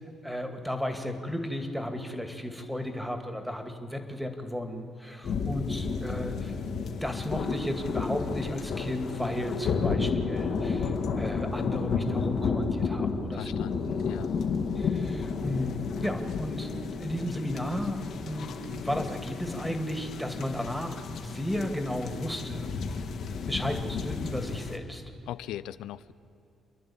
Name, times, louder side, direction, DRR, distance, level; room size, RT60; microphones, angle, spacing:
voice 1, 0.2-6.5 7.0-13.7 14.8-16.7 17.0-22.8 23.5-25.0, left 1 dB, ahead, 6 dB, 2.3 m, -34 dB
sound 1, 5.2-24.8, left 5 dB, 70° left, 2.0 m, -32 dB
voice 2, 13.3-14.3 25.3-26.1, left 12 dB, 90° left, 14 dB, 0.4 m, -39 dB
28.5 x 11.0 x 8.8 m, 2.9 s
cardioid pair, 90°, 0 cm